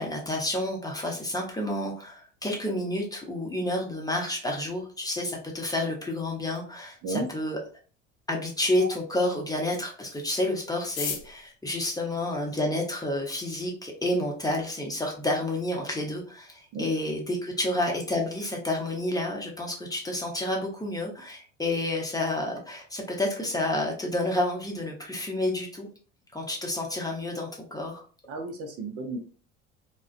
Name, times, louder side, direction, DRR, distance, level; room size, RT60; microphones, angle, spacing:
voice 1, 0.0-7.6 8.3-25.9 26.3-28.0, left 1 dB, 10° left, 0 dB, 0.7 m, -30 dB
sound 1, 10.8-13.0 13.8-13.9 14.1-14.2 14.5-15.0 15.3-15.4 15.6-16.0 16.3-16.5 16.9-17.2, left 7 dB, 60° left, 0.7 m, -38 dB
voice 2, 28.3-29.2, right 2 dB, 40° right, 4 dB, 0.6 m, -33 dB
2.4 x 2.1 x 2.4 m, 0.39 s
hypercardioid pair, 70°, 36 cm